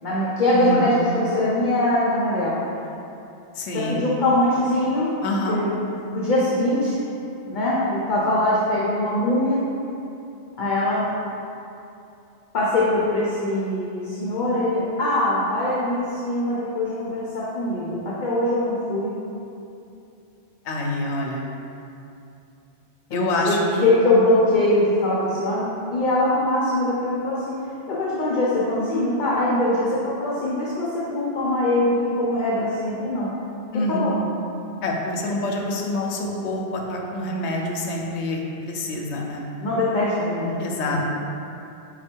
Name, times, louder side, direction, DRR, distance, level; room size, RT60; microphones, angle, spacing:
voice 1, 0.0-2.6 3.7-5.1 5.5-7.0 7.5-9.6 10.6-11.0 12.5-19.1 23.1-25.6 25.9-27.5 27.9-33.3 34.0-34.1 39.6-40.6 40.9-41.0, left 1 dB, 50° left, -7 dB, 0.7 m, -22 dB
voice 2, 0.5-0.9 3.5-4.0 5.2-5.6 20.6-21.5 23.1-23.9 33.7-34.1 34.8-39.4 40.6-41.0, left 1 dB, 80° left, -1 dB, 0.9 m, -26 dB
4.3 x 2.3 x 4.4 m, 2.7 s
omnidirectional pair, 1.2 m